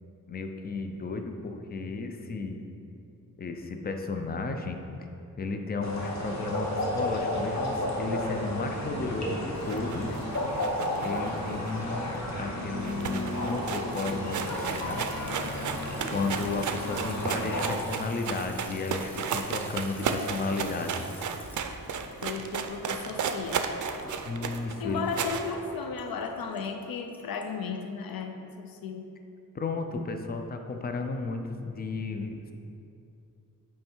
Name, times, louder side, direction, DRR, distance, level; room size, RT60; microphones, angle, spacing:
voice 1, 0.3-2.6 3.4-4.8 5.4-10.2 11.0-15.1 16.1-21.1 24.2-25.1 29.5-32.5, left 3 dB, 25° left, 5 dB, 0.5 m, -33 dB
sound 1, 5.8-17.7, left 1 dB, 50° left, 1.2 m, -32 dB
sound 2, 9.6-12.2 12.5-12.6 12.8-25.5, right 6 dB, 60° right, 0.5 m, -34 dB
Water tap faucet / Sink (filling or washing) / Trickle dribble, 14.0-28.1, equal, 5° left, 0.9 m, -47 dB
voice 2, 22.2-23.7 24.8-29.1, left 5 dB, 85° left, 6 dB, 0.5 m, -35 dB
8.8 x 3.3 x 4.5 m, 2.6 s
wide cardioid pair, 95°, 35 cm